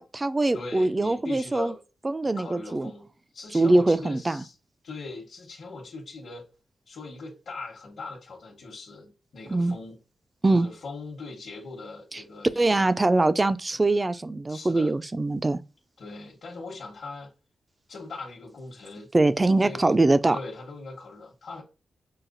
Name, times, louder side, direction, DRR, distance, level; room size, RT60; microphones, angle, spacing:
voice 1, 0.0-1.7 2.0-2.9 3.5-4.4 9.5-9.7 10.4-10.7 12.6-15.6 19.1-20.4, right 2 dB, 20° right, 0.3 m, -23 dB
voice 2, 0.5-1.8 2.2-4.5 4.8-6.5 6.9-10.0 10.5-12.9 14.5-15.0 16.0-17.3 17.9-19.1 19.6-20.0 20.3-21.6, left 3 dB, 65° left, 1.0 m, -40 dB
5.6 x 2.3 x 2.5 m
wide cardioid pair, 110°, 0 cm